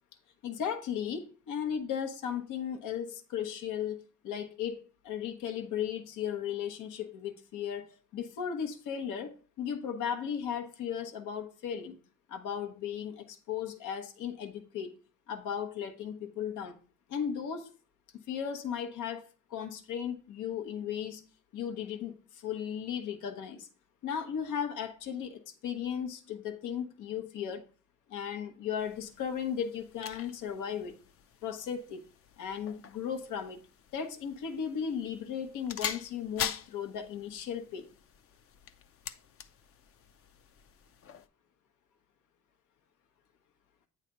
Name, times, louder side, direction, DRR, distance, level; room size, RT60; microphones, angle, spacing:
voice 1, 0.4-12.0 12.3-14.9 15.3-16.8 17.1-17.7 18.3-21.2 21.5-23.7 24.0-27.6 28.1-30.9 31.4-32.1 32.4-33.6 33.9-37.9, left 8 dB, 85° left, 1.0 m, -36 dB
sound 1, 28.8-41.3, left 7 dB, 50° left, 0.6 m, -44 dB
8.7 x 3.3 x 5.3 m
cardioid pair, 90°, 30 cm